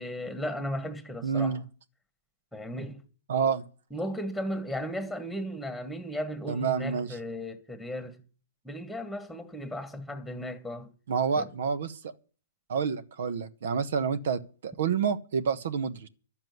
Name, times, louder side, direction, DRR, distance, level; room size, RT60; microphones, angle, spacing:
voice 1, 0.0-1.6 2.5-3.0 3.9-8.2 8.6-10.9 11.4-11.5, equal, ahead, 1.5 m, -35 dB
voice 2, 1.2-1.6 3.3-3.7 6.5-7.2 11.1-12.1 12.7-16.1, right 6 dB, 70° right, 1.2 m, -28 dB
11.5 x 7.4 x 9.5 m
hypercardioid pair, 135°, 0 cm